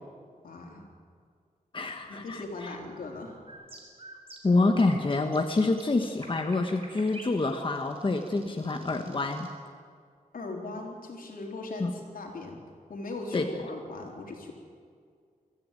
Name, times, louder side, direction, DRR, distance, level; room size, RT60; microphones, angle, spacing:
voice 1, 0.4-0.9 2.1-3.4 10.3-12.6 12.9-14.5, left 2 dB, 80° left, 0 dB, 4.0 m, -39 dB
voice 2, 1.7-2.4 4.4-9.5 11.8-11.9 13.3-13.5, left 3 dB, 35° left, 4 dB, 1.3 m, -27 dB
sound 1, 3.5-9.5, right 2 dB, 40° right, 3.9 m, -48 dB
23.0 x 14.5 x 9.2 m, 2.1 s
wide cardioid pair, 105°, 15 cm